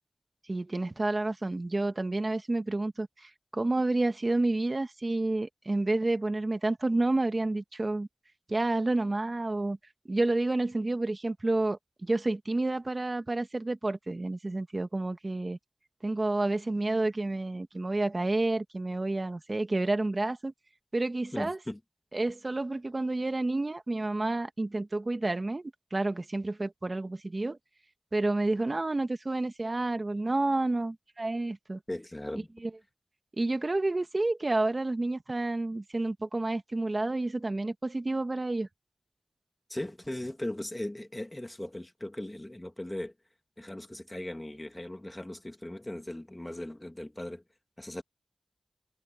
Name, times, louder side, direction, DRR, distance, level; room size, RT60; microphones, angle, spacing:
voice 1, 0.5-8.1 8.5-9.8 10.1-15.6 16.0-20.5 20.9-21.6 22.1-27.6 28.1-31.8 33.4-38.7, right 2 dB, 45° right, 1.7 m, -29 dB
voice 2, 21.3-21.8 31.9-32.5 39.7-43.1 43.6-47.4 47.8-48.0, left 1 dB, 20° left, 2.4 m, -38 dB
wide cardioid pair, 60°, 0 cm